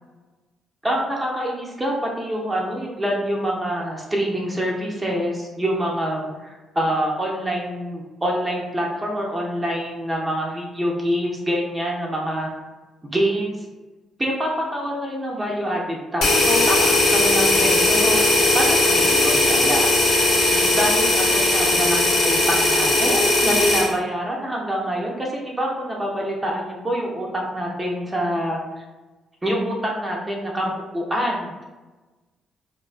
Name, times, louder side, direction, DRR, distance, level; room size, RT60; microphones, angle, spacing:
voice 1, 0.8-12.5 13.0-13.6 14.2-28.6 29.4-31.6, equal, 20° right, -2 dB, 0.5 m, -26 dB
sound 1, 16.2-23.9, left 2 dB, 85° left, 0.7 m, -18 dB
2.3 x 2.2 x 2.4 m, 1.2 s
cardioid pair, 90°, 0 cm